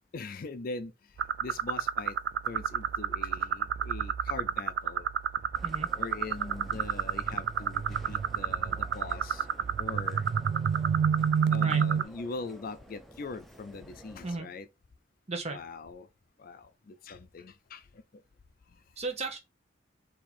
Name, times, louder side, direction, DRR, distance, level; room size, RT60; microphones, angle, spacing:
voice 1, 0.1-2.2 2.5-5.1 6.0-9.5 9.8-10.3 11.5-14.7 15.5-16.1 16.4-18.2 18.7-18.8, left 3 dB, 50° left, 0.5 m, -42 dB
sound 1, 1.2-12.0, right 7 dB, 60° right, 0.3 m, -29 dB
sound 2, 5.5-14.4, equal, ahead, 0.7 m, -52 dB
voice 2, 19.0-19.4, right 3 dB, 35° right, 1.1 m, -34 dB
4.3 x 2.8 x 4.2 m
head